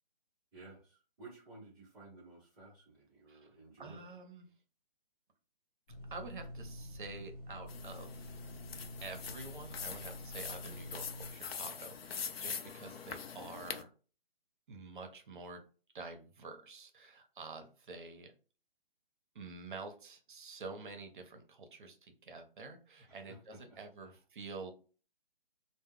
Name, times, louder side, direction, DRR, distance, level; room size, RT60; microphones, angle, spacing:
voice 1, 0.5-4.0 23.1-24.2, right 3 dB, 5° right, -10 dB, 0.7 m, -55 dB
voice 2, 3.8-4.4 6.1-8.3 9.0-13.9 14.7-15.6 15.9-18.3 19.3-24.7, right 3 dB, 55° right, 6 dB, 0.7 m, -48 dB
sound 1, 5.9-11.3, equal, 40° left, 0.9 m, -48 dB
sound 2, 7.7-13.8, left 6 dB, 80° left, 0.5 m, -44 dB
2.1 x 2.1 x 3.5 m, 0.38 s
hypercardioid pair, 165°, 30 cm